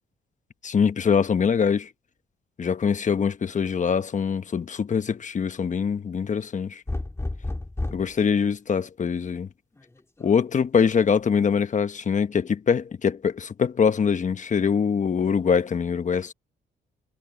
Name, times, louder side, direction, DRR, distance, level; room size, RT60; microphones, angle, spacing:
voice 1, 0.6-1.9 2.6-6.8 7.9-9.5 10.2-16.3, left 6 dB, 40° left, 1.2 m, -23 dB
sound 1, 6.9-8.1 9.8-10.3, left 2 dB, 15° left, 2.0 m, -31 dB
cardioid pair, 90°, 20 cm